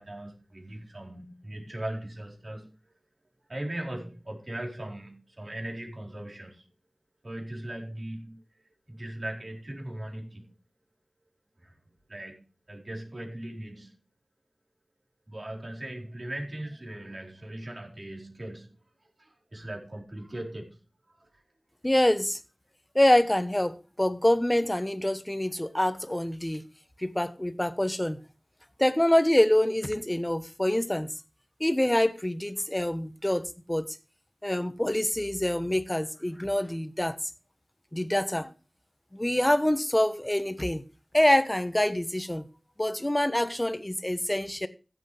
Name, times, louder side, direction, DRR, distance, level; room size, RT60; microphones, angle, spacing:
voice 1, 0.0-2.9 3.5-6.7 7.2-8.4 8.9-10.5 11.6-11.7 12.1-13.9 15.3-18.7 19.0-20.8 21.1-21.4, right 1 dB, 50° right, 4.2 m, -39 dB
voice 2, 21.8-22.4 22.9-26.6 27.0-28.2 28.8-31.1 31.6-33.9 34.4-37.2 37.9-38.5 39.1-40.8 41.1-42.4 42.8-44.7, left 1 dB, 15° left, 1.1 m, -25 dB
15.5 x 8.2 x 3.4 m
wide cardioid pair, 50°, 0 cm